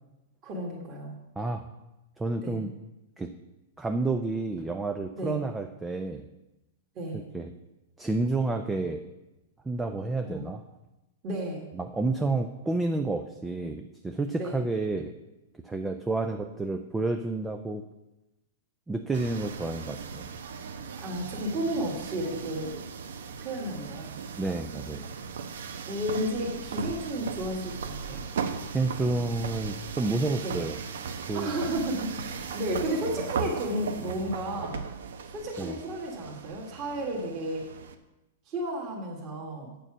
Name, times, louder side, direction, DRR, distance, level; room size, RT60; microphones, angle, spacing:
voice 1, 0.4-1.2 2.4-2.6 5.2-5.4 7.0-7.2 10.2-10.5 11.2-11.7 14.4-14.6 21.0-22.7 23.4-24.1 25.9-28.2 30.4-30.6 31.3-34.8 35.3-37.7 38.5-39.7, right 1 dB, 25° right, -2 dB, 1.7 m, -32 dB
voice 2, 1.4-1.7 2.2-2.7 3.2-3.3 3.8-6.3 7.1-7.5 8.0-9.0 9.7-10.6 11.7-15.1 15.6-17.9 18.9-20.3 24.4-25.1 28.7-30.8 31.3-31.5 35.6-35.8, right 3 dB, 5° right, 6 dB, 0.4 m, -30 dB
sound 1, 19.1-37.9, right 6 dB, 80° right, 0.9 m, -37 dB
8.7 x 6.8 x 6.0 m, 0.99 s
supercardioid pair, 170°, 0 cm